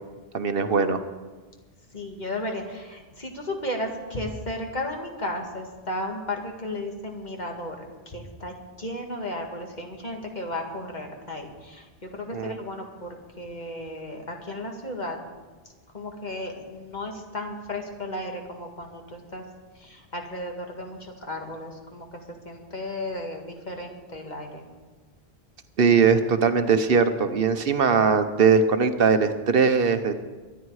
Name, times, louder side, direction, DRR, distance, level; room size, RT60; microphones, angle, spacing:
voice 1, 0.3-1.0 12.3-12.6 25.8-30.2, right 5 dB, 65° right, 9 dB, 1.0 m, -20 dB
voice 2, 1.9-15.2 15.9-19.4 19.7-24.6, left 1 dB, 45° left, 2 dB, 2.0 m, -34 dB
23.0 x 10.0 x 4.8 m, 1.3 s
omnidirectional pair, 1.0 m